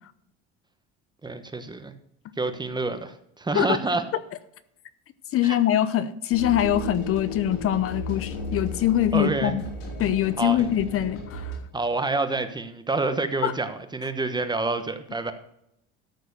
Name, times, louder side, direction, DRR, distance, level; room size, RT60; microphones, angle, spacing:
voice 1, 1.2-1.9 2.4-4.0 5.4-5.6 9.1-9.6 10.4-10.7 11.7-15.3, right 3 dB, 15° right, 9 dB, 1.1 m, -28 dB
voice 2, 5.3-9.6 10.0-11.5 13.4-13.5, left 11 dB, 50° left, 13 dB, 0.7 m, -23 dB
sound 1, 6.3-11.6, left 1 dB, 85° left, 4.2 m, -35 dB
13.0 x 4.5 x 6.9 m, 0.79 s
supercardioid pair, 95°, 29 cm